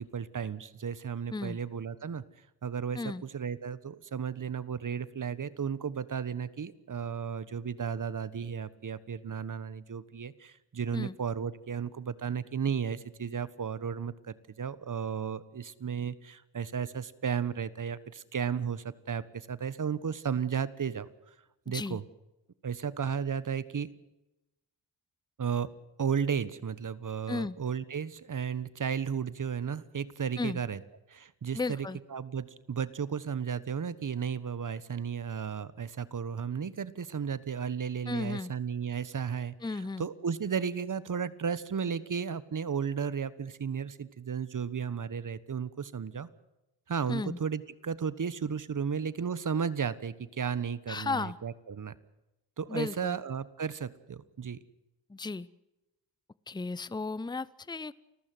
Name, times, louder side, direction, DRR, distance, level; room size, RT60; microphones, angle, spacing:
voice 1, 0.0-2.2 2.6-21.1 21.7-22.0 22.6-23.9 25.4-25.7 26.0-30.8 31.1-46.3 46.9-51.9 52.6-54.6, right 7 dB, 45° right, 17 dB, 1.4 m, -34 dB
voice 2, 21.7-22.0 27.3-27.6 30.4-30.6 31.5-32.0 38.1-38.5 39.6-40.1 47.1-47.4 50.9-51.4 52.7-53.2 55.1-55.5 56.5-57.9, left 3 dB, 10° left, 20 dB, 0.7 m, -34 dB
29.0 x 15.0 x 7.9 m, 0.95 s
cardioid pair, 65°, 45 cm